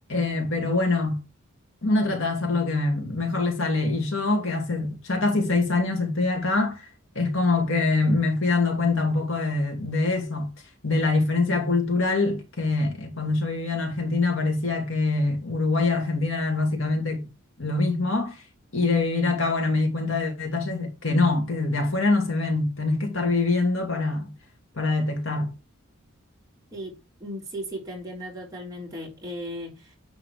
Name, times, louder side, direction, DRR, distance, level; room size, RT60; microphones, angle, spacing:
voice 1, 0.1-1.2 1.8-6.8 7.1-10.5 10.8-17.3 17.6-18.4 18.7-24.3 24.7-25.5, left 3 dB, 65° left, 2.4 m, -24 dB
voice 2, 27.2-30.0, equal, 15° right, 3.4 m, -36 dB
10.0 x 3.9 x 5.1 m
head